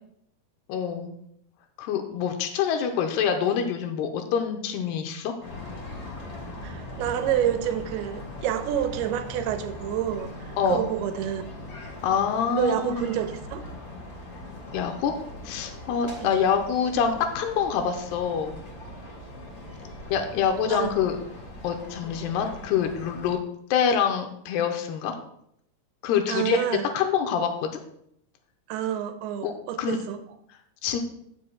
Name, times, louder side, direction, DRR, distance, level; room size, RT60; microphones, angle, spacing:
voice 1, 0.7-1.1 1.8-5.3 10.6-10.9 12.0-13.0 14.7-15.1 15.4-18.6 20.1-21.2 21.6-23.4 23.7-25.1 26.0-26.6 26.9-27.8 29.4-29.5 29.8-30.0 30.8-31.0, left 7 dB, 85° left, 5 dB, 2.8 m, -26 dB
sound 1, 5.4-23.3, left 1 dB, 60° left, 0.9 m, -40 dB
voice 2, 6.6-11.5 12.5-13.7 16.2-16.4 20.7-20.9 26.3-26.9 28.7-30.2, right 10 dB, 80° right, 8 dB, 2.6 m, -28 dB
16.0 x 6.5 x 2.3 m, 0.71 s
omnidirectional pair, 4.6 m